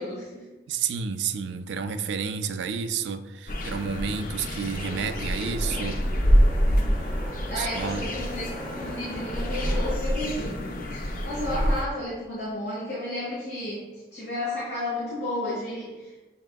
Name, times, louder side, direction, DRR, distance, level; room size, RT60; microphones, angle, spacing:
voice 1, 0.0-0.5 6.7-6.9 7.5-16.2, left 1 dB, 70° left, -8 dB, 1.4 m, -33 dB
voice 2, 0.7-6.0 7.6-8.1, right 6 dB, 85° right, 9 dB, 0.3 m, -30 dB
sound 1, 3.5-11.8, equal, 50° left, 0.5 m, -26 dB
sound 2, 4.7-9.9, equal, 5° left, 0.8 m, -40 dB
6.6 x 3.5 x 2.2 m, 1.2 s
head